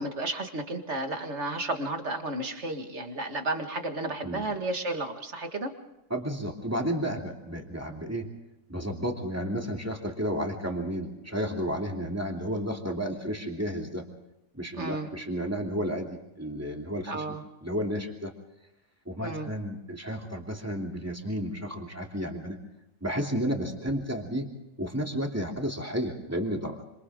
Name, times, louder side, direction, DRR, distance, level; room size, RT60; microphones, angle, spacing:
voice 1, 0.0-5.7 14.8-15.1 17.1-17.4 19.2-19.5, right 2 dB, 45° right, 6 dB, 2.1 m, -32 dB
voice 2, 6.1-8.3 8.7-14.0 14.5-17.4 17.6-18.3 19.1-22.6 23.0-24.5 24.8-26.8, equal, 10° right, 1 dB, 2.9 m, -32 dB
27.0 x 26.5 x 3.7 m, 0.93 s
omnidirectional pair, 1.6 m